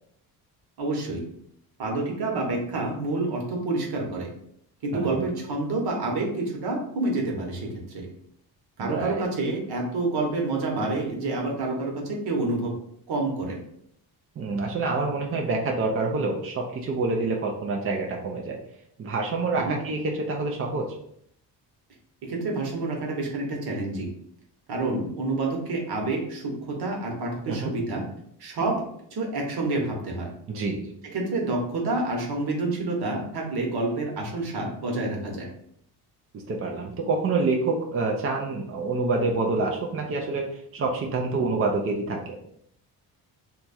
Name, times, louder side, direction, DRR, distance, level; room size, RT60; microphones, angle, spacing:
voice 1, 0.8-1.2 1.8-4.3 4.8-8.1 8.8-12.7 13.1-13.6 19.6-19.8 22.2-24.1 24.7-28.0 28.4-30.3 31.0-35.5, right 2 dB, 65° right, 0 dB, 1.1 m, -28 dB
voice 2, 4.9-5.2 8.8-9.2 14.4-18.6 19.0-21.0 27.5-27.7 30.5-30.8 36.5-40.5 40.7-42.4, right 3 dB, 35° right, 0 dB, 0.5 m, -27 dB
2.9 x 2.3 x 4.1 m, 0.70 s
cardioid pair, 115°, 42 cm